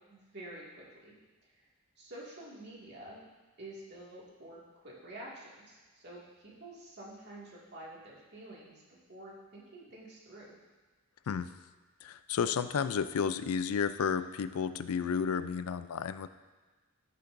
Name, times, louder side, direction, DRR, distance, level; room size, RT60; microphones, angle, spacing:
voice 1, 0.1-1.1 1.5-1.7 2.0-3.2 3.6-8.8 9.1-10.6, right 1 dB, 50° right, -5 dB, 2.1 m, -49 dB
voice 2, 12.0-16.3, left 6 dB, 80° left, 13 dB, 0.4 m, -32 dB
14.5 x 6.7 x 2.6 m, 1.3 s
head